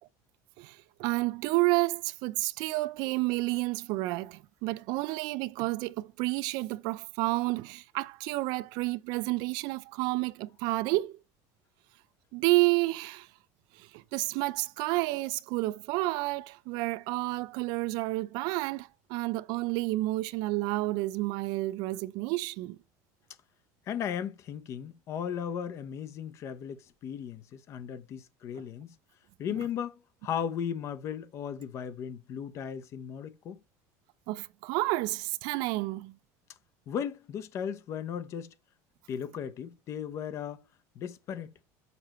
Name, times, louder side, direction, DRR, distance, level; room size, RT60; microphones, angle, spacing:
voice 1, 0.6-11.2 12.3-13.3 13.8-22.8 28.6-28.7 34.3-36.1, right 21 dB, 60° right, 0.4 m, -30 dB
voice 2, 23.9-28.9 29.4-33.6 36.9-38.5 39.1-40.6 40.9-41.5, left 8 dB, 35° left, 0.8 m, -36 dB
6.8 x 5.5 x 3.0 m
cardioid pair, 165°, 8 cm